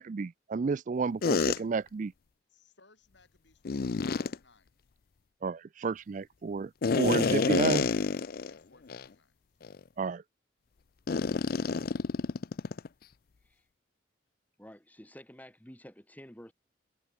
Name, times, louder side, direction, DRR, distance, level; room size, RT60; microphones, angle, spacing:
voice 1, 0.0-2.1 5.4-7.9 10.0-10.2, right 4 dB, 40° right, 0.4 m, -31 dB
sound 1, 1.2-1.6 3.6-4.3 6.8-8.5 8.9-9.0 9.6-9.8 11.1-12.9, left 4 dB, 50° left, 0.5 m, -28 dB
voice 2, 2.5-4.7 8.4-9.4, left 3 dB, 70° left, 7.3 m, -64 dB
voice 3, 14.6-16.5, equal, 10° left, 3.6 m, -50 dB
head